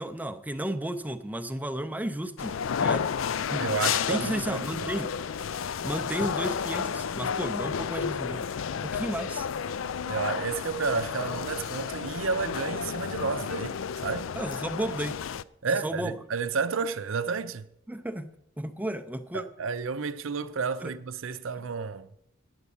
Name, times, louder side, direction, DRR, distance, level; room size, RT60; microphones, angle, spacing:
voice 1, 0.0-3.1 3.5-3.6 4.1-5.1 5.8-8.5 8.8-9.5 14.4-15.2 15.8-16.1 17.9-18.3 18.6-19.4 20.8-20.9, right 1 dB, 10° right, 0.5 m, -33 dB
sound 1, 2.4-15.4, left 7 dB, 70° left, 0.4 m, -31 dB
voice 2, 3.6-4.9 10.1-13.8 14.0-14.3 15.6-17.7 19.3-22.1, right 5 dB, 70° right, 0.5 m, -31 dB
9.5 x 8.0 x 8.5 m
head